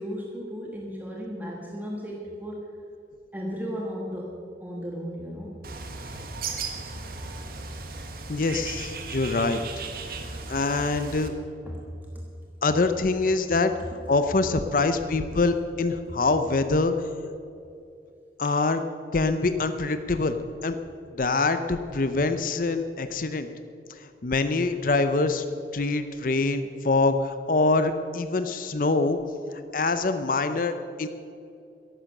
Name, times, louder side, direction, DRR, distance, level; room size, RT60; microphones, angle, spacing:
voice 1, 0.0-2.7 3.3-5.5 9.0-9.2 11.6-11.9 12.1-12.2 18.4-18.6, equal, 10° right, -2 dB, 1.3 m, -35 dB
Bird, 5.6-11.3, right 4 dB, 55° right, 1.3 m, -36 dB
voice 2, 8.3-9.8 10.5-11.3 12.6-13.7 14.1-16.9 18.4-18.8 19.1-20.4 20.6-20.8 21.2-23.5 24.0-25.4 25.7-29.2 29.7-31.1, left 3 dB, 50° left, 9 dB, 0.6 m, -24 dB
14.0 x 11.5 x 6.6 m, 2.6 s
head